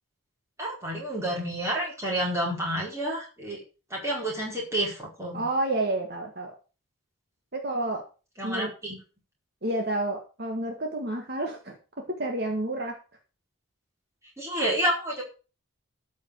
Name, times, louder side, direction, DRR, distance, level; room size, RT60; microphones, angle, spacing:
voice 1, 0.6-3.6 3.9-5.4 8.4-9.0 14.4-15.2, right 1 dB, 15° right, -3 dB, 4.7 m, -29 dB
voice 2, 5.3-6.6 7.5-8.0 8.4-8.7 9.6-11.8 12.2-13.0, right 2 dB, 50° right, 3 dB, 1.8 m, -29 dB
13.0 x 5.8 x 6.6 m, 0.34 s
head